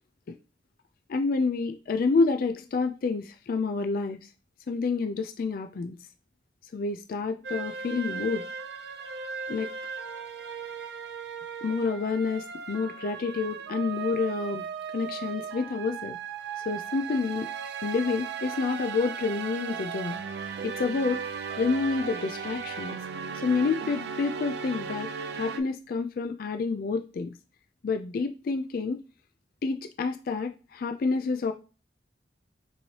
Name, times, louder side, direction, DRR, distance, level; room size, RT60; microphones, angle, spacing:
voice 1, 1.1-4.2 4.7-6.0 6.7-8.4 9.5-9.7 11.6-14.6 14.9-16.2 16.7-17.5 17.8-20.2 20.6-21.2 21.6-23.0 23.3-27.3 27.8-29.0 29.6-31.5, left 4 dB, 55° left, 0.3 m, -28 dB
sound 1, 7.4-25.6, right 6 dB, 65° right, 0.5 m, -37 dB
5.3 x 3.1 x 2.8 m
head